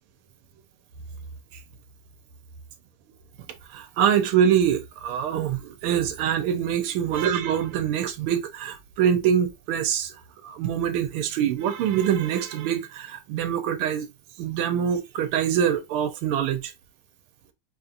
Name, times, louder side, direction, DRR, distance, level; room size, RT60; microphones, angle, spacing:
voice 1, 3.7-10.1 10.4-14.1 14.4-16.7, right 9 dB, 85° right, 1.6 m, -24 dB
5.3 x 2.8 x 2.4 m
omnidirectional pair, 2.4 m